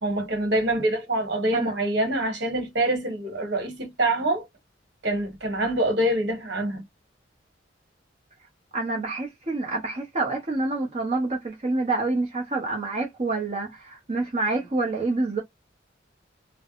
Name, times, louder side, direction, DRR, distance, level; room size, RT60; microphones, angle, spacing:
voice 1, 0.0-4.5 5.0-6.8, right 1 dB, 65° right, 1.3 m, -25 dB
voice 2, 8.7-15.4, right 3 dB, 35° right, 0.8 m, -27 dB
3.3 x 2.0 x 2.4 m
head